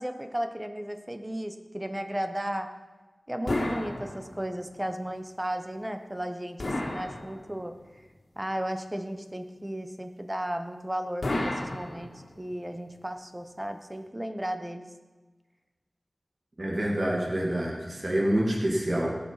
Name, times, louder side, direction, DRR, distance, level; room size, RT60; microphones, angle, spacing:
voice 1, 0.0-2.8 3.3-7.8 8.4-14.9, right 1 dB, 15° right, 7 dB, 1.1 m, -34 dB
sound 1, 3.5-4.7 6.6-7.8 11.2-12.5, left 1 dB, 70° left, 2.2 m, -32 dB
voice 2, 16.6-19.1, right 1 dB, 45° right, -3 dB, 2.6 m, -27 dB
17.0 x 6.8 x 5.9 m, 1.3 s
wide cardioid pair, 65°, 0 cm